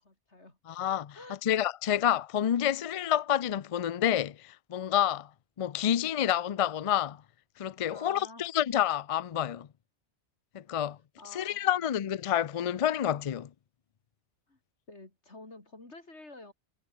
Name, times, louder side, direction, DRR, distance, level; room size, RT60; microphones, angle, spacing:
voice 1, 0.0-0.6 1.1-1.4 7.9-8.5 11.2-12.0 14.5-14.6 14.9-16.5, left 2 dB, 75° left, 4.8 m, -50 dB
voice 2, 0.7-1.2 1.4-5.3 5.6-7.2 7.6-9.7 10.5-11.0 11.3-13.5, left 10 dB, 50° left, 0.4 m, -28 dB
omnidirectional pair, 1.2 m